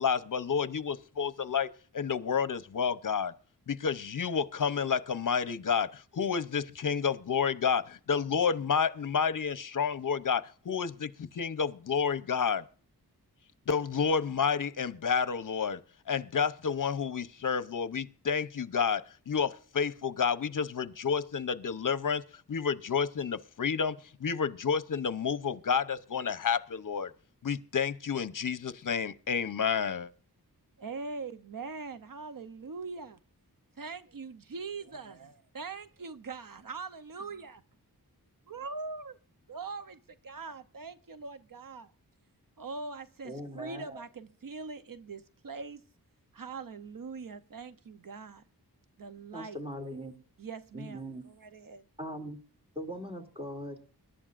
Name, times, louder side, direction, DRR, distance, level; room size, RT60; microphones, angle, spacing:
voice 1, 0.0-1.7 1.9-3.3 3.7-12.6 13.7-15.8 16.1-22.2 22.5-27.1 27.4-30.1, left 6 dB, 55° left, 0.7 m, -30 dB
voice 2, 30.8-33.2 33.8-37.6 38.5-39.1 39.5-41.9 42.6-45.8 46.3-48.4 49.0-49.6 50.4-51.8, right 4 dB, 60° right, 0.8 m, -42 dB
voice 3, 43.2-44.0 49.3-50.1 50.7-51.2 52.0-52.4 52.7-53.8, equal, 15° right, 2.8 m, -40 dB
22.5 x 11.5 x 2.5 m
wide cardioid pair, 80°, 38 cm